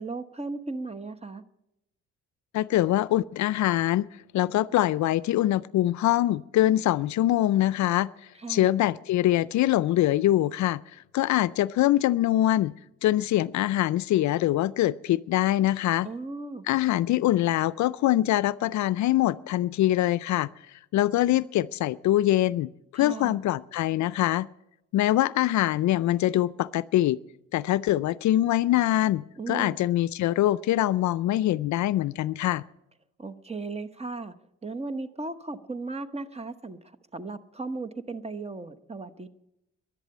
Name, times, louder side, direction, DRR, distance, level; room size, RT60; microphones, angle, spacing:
voice 1, 0.0-1.4 8.4-8.8 16.0-16.7 23.0-23.4 29.4-29.9 33.2-34.3 34.6-36.8 37.1-39.3, right 3 dB, 20° right, 10 dB, 1.0 m, -36 dB
voice 2, 2.5-4.1 4.3-8.1 8.5-10.8 11.1-12.7 13.0-16.1 16.7-20.5 20.9-24.5 24.9-27.2 27.5-32.6, left 14 dB, 70° left, 18 dB, 0.5 m, -24 dB
11.5 x 11.5 x 8.6 m, 0.83 s
cardioid pair, 90°, 30 cm